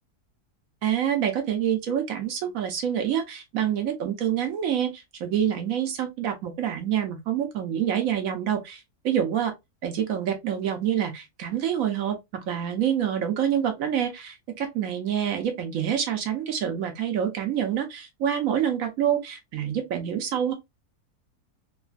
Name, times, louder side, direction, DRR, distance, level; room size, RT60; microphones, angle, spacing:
voice 1, 0.8-9.5 9.8-20.5, right 9 dB, 65° right, 1.0 m, -27 dB
3.1 x 2.3 x 2.4 m
omnidirectional pair, 1.7 m